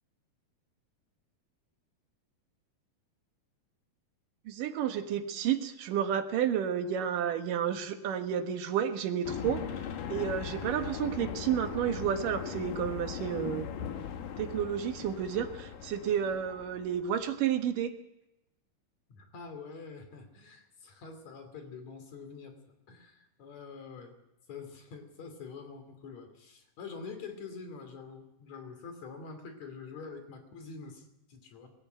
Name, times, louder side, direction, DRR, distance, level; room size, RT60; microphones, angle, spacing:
voice 1, 4.5-9.6 10.1-13.7 14.4-17.9, right 8 dB, 75° right, 7 dB, 3.0 m, -31 dB
sound 1, 9.2-17.3, left 8 dB, 75° left, 2.9 m, -39 dB
voice 2, 19.1-22.5 22.9-24.1 24.5-31.7, left 5 dB, 55° left, 7 dB, 3.9 m, -46 dB
20.5 x 16.0 x 9.2 m, 0.94 s
omnidirectional pair, 3.9 m